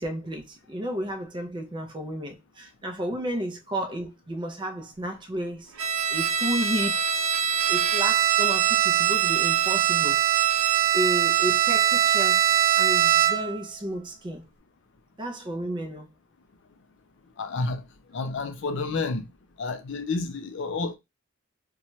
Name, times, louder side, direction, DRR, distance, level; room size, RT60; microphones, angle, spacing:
voice 1, 0.0-5.7 6.1-7.0 7.7-10.2 10.9-12.5 12.8-14.4 15.2-16.1, equal, 20° right, 0.4 m, -32 dB
Bowed string instrument, 5.8-13.6, right 10 dB, 80° right, 0.6 m, -22 dB
voice 2, 17.4-17.8 18.1-19.3 19.6-21.0, left 3 dB, 55° left, 0.4 m, -30 dB
2.7 x 2.2 x 3.0 m
head